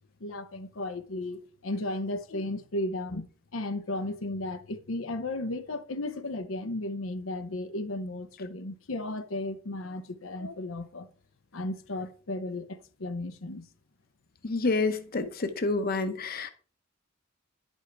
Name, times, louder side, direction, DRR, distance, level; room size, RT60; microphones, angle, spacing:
voice 1, 0.2-11.1 11.5-13.7, left 2 dB, 90° left, 0.9 m, -34 dB
voice 2, 14.4-16.5, left 3 dB, 50° left, 0.9 m, -28 dB
11.0 x 5.5 x 4.6 m
head